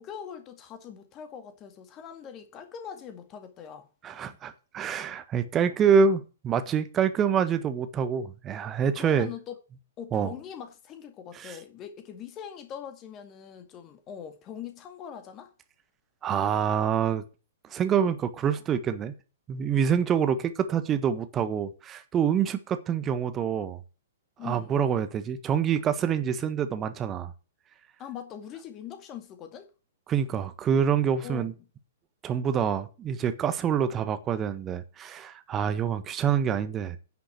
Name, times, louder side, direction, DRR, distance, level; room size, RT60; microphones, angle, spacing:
voice 1, 0.0-3.9 9.0-9.6 10.0-15.5 24.4-24.7 28.0-29.7 31.2-31.4, left 8 dB, 25° left, 2.0 m, -42 dB
voice 2, 4.0-9.3 10.1-10.3 11.3-11.6 16.2-17.2 17.7-19.1 19.5-23.8 24.4-27.3 30.1-31.5 32.2-37.0, right 7 dB, 20° right, 1.4 m, -26 dB
10.5 x 6.2 x 7.9 m
figure-of-eight pair, 110°, 0 cm